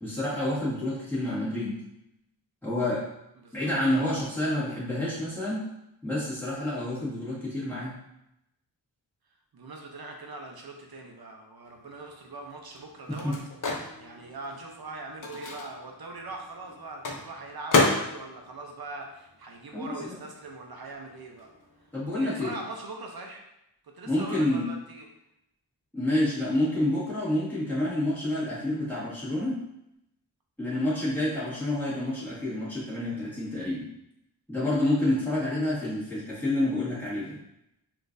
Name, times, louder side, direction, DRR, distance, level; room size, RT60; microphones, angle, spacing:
voice 1, 0.0-1.7 2.6-3.0 3.5-5.6 6.0-7.9 13.2-13.3 19.7-20.1 21.9-22.5 24.0-24.7 25.9-29.5 30.6-33.8 34.5-37.4, left 1 dB, 5° left, -10 dB, 1.5 m, -28 dB
voice 2, 3.4-3.7 9.5-13.4 14.0-21.5 22.1-23.4 23.9-25.1 34.7-35.0, right 2 dB, 55° right, 2 dB, 0.5 m, -41 dB
Microwave oven, 11.8-19.9 20.2-22.1, left 3 dB, 45° left, 0.6 m, -32 dB
3.7 x 2.5 x 2.5 m, 0.83 s
wide cardioid pair, 70°, 45 cm